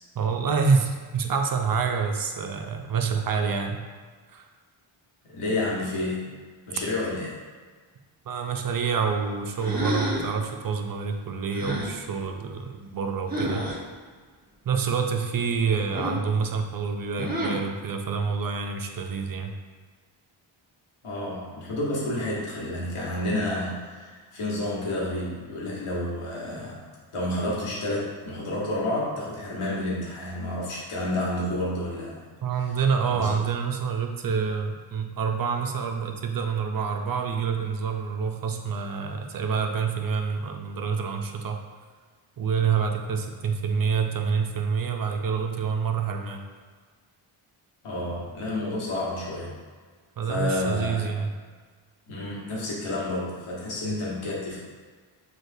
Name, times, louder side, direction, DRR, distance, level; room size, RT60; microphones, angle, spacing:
voice 1, 0.1-3.8 4.3-4.5 8.3-13.6 14.6-19.5 32.4-41.6 42.4-46.4 50.2-51.3 53.8-54.0, right 5 dB, 45° right, 5 dB, 0.5 m, -27 dB
voice 2, 5.3-6.3 6.7-7.4 21.0-26.8 27.1-32.2 33.1-33.4 47.8-49.6 50.3-51.1 52.1-54.6, left 1 dB, 80° left, -5 dB, 1.3 m, -30 dB
sound 1, 9.6-10.4 11.5-12.0 13.3-13.8 15.9-16.3 17.2-17.7, equal, 20° right, 1.0 m, -29 dB
6.2 x 2.4 x 2.6 m, 1.5 s
cardioid pair, 60°, 49 cm